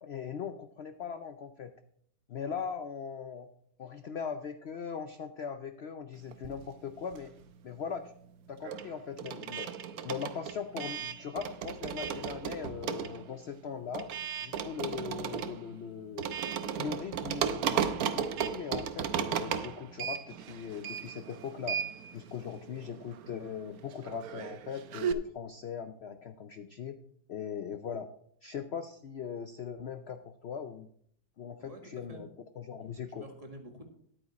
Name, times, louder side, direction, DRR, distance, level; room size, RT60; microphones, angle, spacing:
voice 1, 0.0-1.7 2.3-3.5 3.8-7.3 7.6-8.1 8.5-9.7 10.0-14.1 14.4-16.2 16.8-17.9 18.1-21.8 22.1-26.9 27.3-28.1 28.4-30.9 31.4-32.3 32.6-33.2, left 7 dB, 85° left, 9 dB, 0.5 m, -40 dB
sound 1, 6.3-7.6 7.8-25.1, right 8 dB, 65° right, 1.1 m, -36 dB
voice 2, 31.6-32.3 32.9-33.8, right 1 dB, 20° right, 3 dB, 1.6 m, -49 dB
11.0 x 8.7 x 4.2 m, 0.65 s
omnidirectional pair, 1.9 m